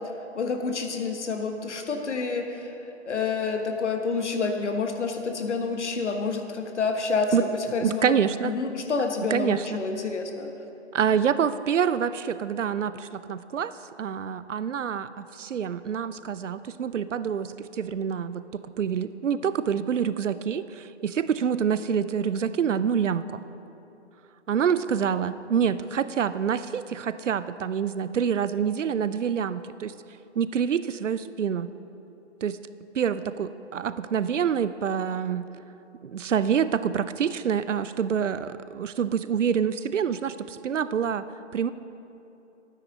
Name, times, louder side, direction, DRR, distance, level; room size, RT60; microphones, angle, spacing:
voice 1, 0.3-2.7 3.0-8.1 8.4-10.5, left 4 dB, 70° left, 4 dB, 1.4 m, -28 dB
voice 2, 7.8-8.5 9.3-9.8 10.9-13.7 14.0-23.4 24.5-29.9 30.4-31.7 32.4-32.6 32.9-35.5 36.0-41.2 41.5-41.7, right 7 dB, 85° right, 14 dB, 0.6 m, -26 dB
13.0 x 9.4 x 4.0 m, 2.9 s
hypercardioid pair, 150°, 36 cm